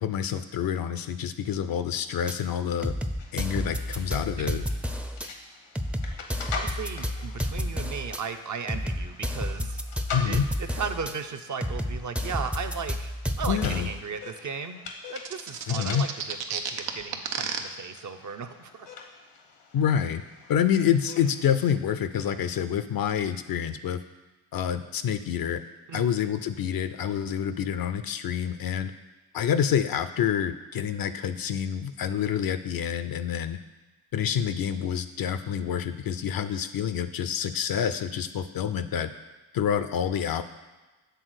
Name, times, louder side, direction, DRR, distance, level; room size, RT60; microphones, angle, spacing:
voice 1, 0.0-2.9 3.3-4.6 10.1-10.4 13.5-13.9 15.7-16.1 19.7-20.2 20.5-24.0 24.5-25.6 25.9-28.9 29.3-33.6 34.1-39.1 39.5-40.4, left 8 dB, 55° left, 11 dB, 0.6 m, -27 dB
sound 1, 2.3-2.4 2.8-5.3 5.7-8.2 8.7-11.1 11.6-14.0, equal, 5° right, 0.5 m, -31 dB
sound 2, 3.2-21.6, left 4 dB, 75° left, 1.1 m, -43 dB
voice 2, 6.6-9.8 10.3-14.8 15.1-18.9 25.9-26.1, right 6 dB, 45° right, 7 dB, 0.7 m, -36 dB
sound 3, 15.2-17.6, right 7 dB, 80° right, 0.7 m, -31 dB
6.9 x 3.6 x 6.3 m, 1.2 s
supercardioid pair, 50°, 43 cm